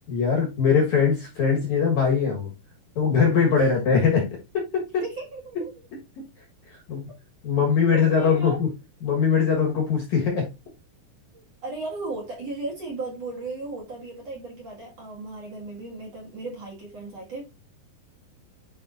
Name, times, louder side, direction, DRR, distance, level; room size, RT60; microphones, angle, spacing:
voice 1, 0.1-2.5 3.0-4.3 4.5-5.0 6.9-7.1 7.4-8.7 9.0-10.5, left 6 dB, 60° left, 2.2 m, -21 dB
voice 2, 5.0-5.7 7.1-7.2 7.9-8.6 11.3-17.4, right 2 dB, 50° right, 2.4 m, -36 dB
11.0 x 5.0 x 2.5 m
omnidirectional pair, 5.0 m